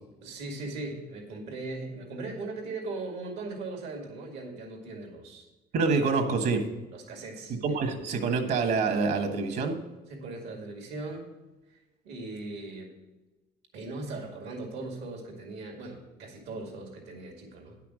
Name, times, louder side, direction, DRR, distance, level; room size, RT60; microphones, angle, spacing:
voice 1, 0.2-5.5 6.9-7.9 10.1-11.2 12.0-12.9 13.7-17.8, right 2 dB, 90° right, 2 dB, 2.1 m, -39 dB
voice 2, 5.7-6.6 7.6-9.8, right 4 dB, 70° right, 5 dB, 1.6 m, -26 dB
10.0 x 5.8 x 6.3 m, 1.1 s
cardioid pair, 110°, 17 cm